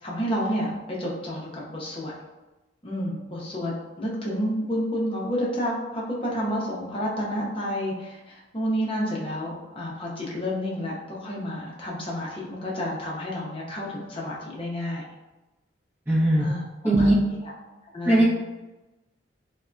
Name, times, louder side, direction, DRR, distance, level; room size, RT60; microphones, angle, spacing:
voice 1, 0.0-2.1 2.8-15.0 16.4-16.6 17.0-17.5 17.9-18.2, equal, 25° left, -4 dB, 0.7 m, -30 dB
voice 2, 16.1-16.4 16.8-17.2 18.0-18.2, right 1 dB, 10° right, -9 dB, 0.8 m, -19 dB
3.4 x 2.2 x 2.5 m, 1.0 s
head